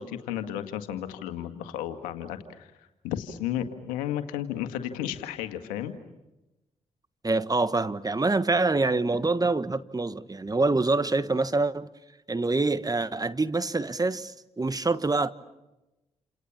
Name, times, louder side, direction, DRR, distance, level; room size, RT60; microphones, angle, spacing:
voice 1, 0.0-5.9, left 11 dB, 90° left, 1.8 m, -33 dB
voice 2, 7.2-11.9 12.3-15.3, right 3 dB, 25° right, 1.4 m, -25 dB
29.5 x 28.0 x 7.3 m
hypercardioid pair, 40°, 14 cm